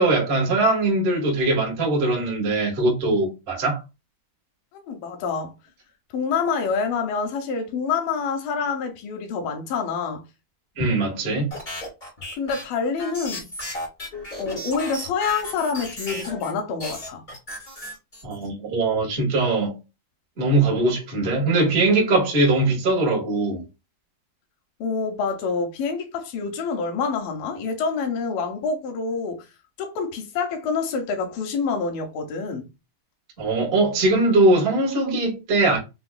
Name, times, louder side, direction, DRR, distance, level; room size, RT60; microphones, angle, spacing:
voice 1, 0.0-3.8 10.7-11.5 18.2-19.8 20.4-23.6 33.4-35.8, right 2 dB, 65° right, 0.5 m, -21 dB
voice 2, 4.7-5.5 6.1-10.2 12.3-13.4 14.4-17.2 24.8-29.5 29.8-32.7, left 5 dB, 80° left, 2.3 m, -27 dB
sound 1, 11.5-16.5 16.8-18.5, left 1 dB, 40° left, 0.7 m, -34 dB
5.8 x 2.2 x 2.3 m
omnidirectional pair, 4.3 m